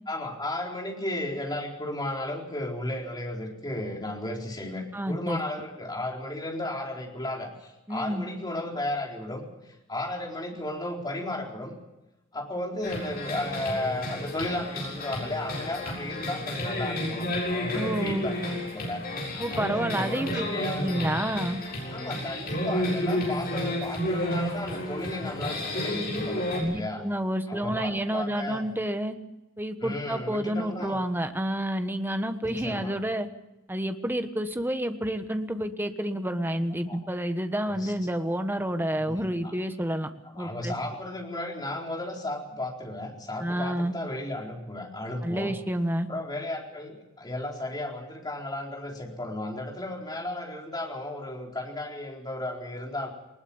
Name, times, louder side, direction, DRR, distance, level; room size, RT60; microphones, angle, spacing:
voice 1, 0.1-9.4 9.9-11.7 12.3-19.0 19.3-19.6 19.9-20.8 21.9-27.0 27.5-28.7 29.8-31.0 32.4-32.9 36.9-37.0 37.7-37.9 39.0-39.5 40.3-45.5 46.1-53.1, left 1 dB, 20° left, 0 dB, 4.3 m, -34 dB
voice 2, 4.9-5.4 7.9-8.2 17.7-18.3 19.4-20.5 20.8-21.6 26.5-29.1 29.6-33.3 33.7-40.1 40.4-40.7 43.4-43.9 45.2-46.1, right 1 dB, 10° right, 8 dB, 1.3 m, -29 dB
sound 1, 12.8-26.6, left 1 dB, 50° left, 7.5 m, -31 dB
20.5 x 20.0 x 7.2 m, 0.95 s
head